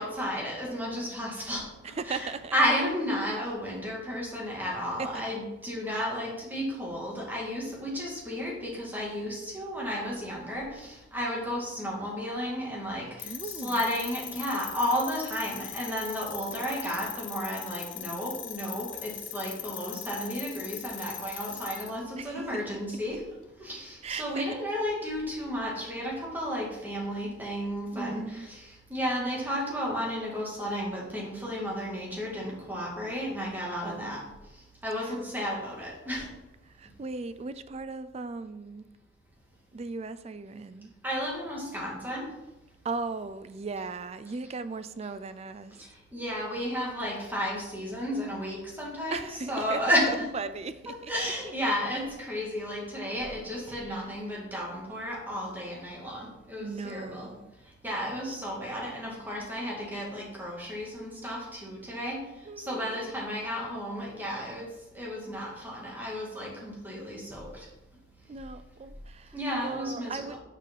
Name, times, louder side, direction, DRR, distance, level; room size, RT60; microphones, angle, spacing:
voice 1, 0.0-23.2 23.6-34.2 34.8-36.3 41.0-42.3 45.8-50.3 50.9-57.3 57.8-62.2 62.6-64.7 64.9-67.7 69.3-70.4, equal, 10° right, 2.0 m, -33 dB
voice 2, 1.8-2.5 5.0-5.2 13.2-13.8 22.2-22.8 24.0-24.5 27.9-28.5 33.8-34.3 35.0-35.2 36.7-38.9 39.7-40.9 42.8-45.8 49.1-51.1 53.7-54.1 56.6-57.5 58.0-58.2 62.5-63.1 68.3-69.4 69.6-70.4, right 4 dB, 35° right, 0.4 m, -38 dB
sound 1, 13.2-22.0, left 12 dB, 85° left, 0.7 m, -40 dB
6.7 x 4.9 x 5.4 m
head